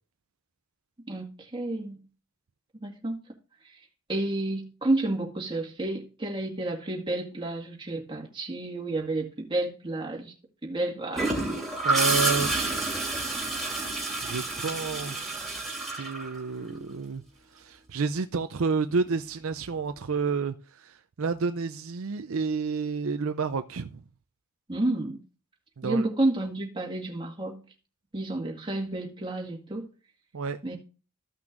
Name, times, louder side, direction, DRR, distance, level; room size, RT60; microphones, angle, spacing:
voice 1, 1.0-2.0 2.8-3.2 3.6-10.3 10.6-11.5 24.7-25.2 25.8-27.6 28.1-29.9 30.6-30.8, right 2 dB, 20° right, 1.9 m, -30 dB
Gurgling / Toilet flush, 11.1-16.9 18.9-19.1, right 2 dB, ahead, 3.0 m, -29 dB
voice 2, 11.8-12.5 14.2-17.2 17.5-24.0 25.8-26.1 30.3-30.6, right 4 dB, 65° right, 0.5 m, -30 dB
15.0 x 6.0 x 2.6 m
head